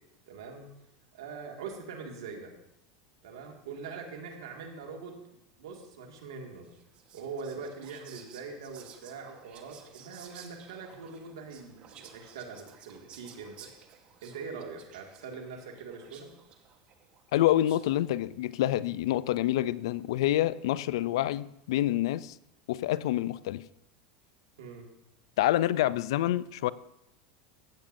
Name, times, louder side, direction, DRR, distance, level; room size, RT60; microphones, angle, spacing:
voice 1, 0.3-0.7 1.1-2.5 3.2-5.2 5.6-6.7 7.1-13.7 14.2-16.3 24.6-24.9, right 5 dB, 90° right, 1 dB, 2.1 m, -42 dB
Whispering, 6.6-18.1, right 8 dB, 45° right, 1.2 m, -54 dB
voice 2, 17.3-22.4 22.7-23.6 25.4-26.7, left 14 dB, 80° left, 18 dB, 0.4 m, -27 dB
15.5 x 8.7 x 2.7 m, 0.81 s
supercardioid pair, 120°, 3 cm